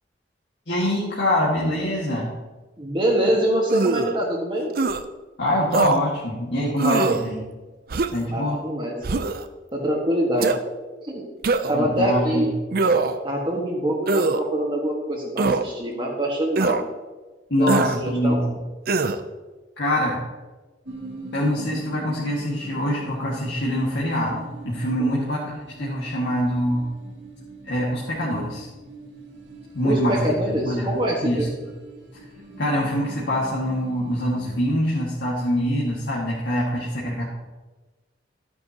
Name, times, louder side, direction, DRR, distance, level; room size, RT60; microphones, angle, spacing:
voice 1, 0.7-2.3 5.4-7.5 8.1-8.6 11.7-12.5 17.5-18.6 19.8-20.2 21.3-26.9 27.7-28.7 29.7-30.2 30.5-30.9 31.2-31.7 32.6-37.2, equal, 70° left, -6 dB, 1.9 m, -24 dB
voice 2, 2.8-4.7 8.3-8.9 9.7-10.5 11.0-11.3 11.7-12.5 13.2-16.8 17.6-18.4 25.0-25.2 29.8-31.5, right 1 dB, 25° right, -2 dB, 1.6 m, -24 dB
sound 1, 3.7-4.2 4.7-5.0 5.7-6.0 6.8-7.2 7.9-8.3 9.0-9.4 10.4-10.6 11.4-11.8 12.7-13.2 14.1-14.4 15.4-15.6 16.6-16.8 17.7-18.0 18.9-19.2, right 3 dB, 55° right, 0.5 m, -22 dB
sound 2, 20.8-34.8, right 2 dB, 90° right, 2.5 m, -42 dB
12.5 x 9.3 x 2.9 m, 1.2 s
head